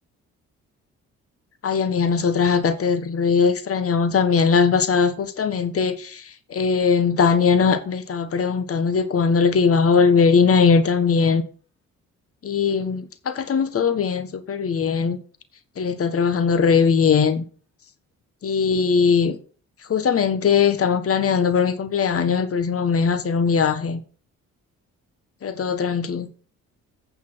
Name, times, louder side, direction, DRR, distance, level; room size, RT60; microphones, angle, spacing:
voice 1, 1.6-11.4 12.4-15.2 15.8-17.4 18.4-19.4 19.9-24.0 25.4-26.3, left 5 dB, 50° left, 1.5 m, -20 dB
8.7 x 5.5 x 6.4 m
cardioid pair, 90°, 30 cm